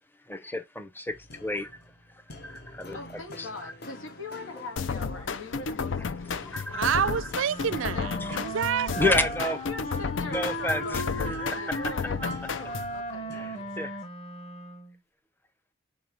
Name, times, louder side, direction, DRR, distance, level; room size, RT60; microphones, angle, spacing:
voice 1, 0.3-1.7 2.4-3.0 3.4-3.7 6.5-7.1 8.2-8.4 9.0-9.6 10.3-11.9 13.3-14.0, left 1 dB, 10° left, 0.7 m, -31 dB
sound 1, 1.1-14.0, left 1 dB, 55° left, 1.1 m, -49 dB
voice 2, 2.9-7.3 7.9-8.1 9.1-13.9, left 3 dB, 90° left, 1.8 m, -42 dB
sound 2, 4.8-13.0, left 5 dB, 70° left, 0.5 m, -33 dB
voice 3, 6.7-9.2, right 8 dB, 80° right, 0.4 m, -28 dB
Wind instrument woodwind instrument, 7.5-15.0, equal, 30° left, 1.1 m, -37 dB
5.4 x 3.8 x 4.6 m
head